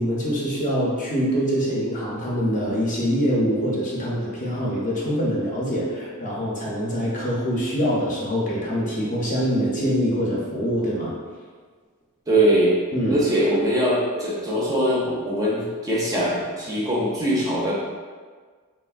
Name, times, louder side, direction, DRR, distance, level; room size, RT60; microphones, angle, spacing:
voice 1, 0.0-11.1 12.9-13.2, equal, 35° left, -5 dB, 0.6 m, -24 dB
voice 2, 12.3-12.8 13.1-17.7, right 1 dB, 15° right, -6 dB, 0.4 m, -22 dB
3.2 x 2.1 x 2.4 m, 1.5 s
head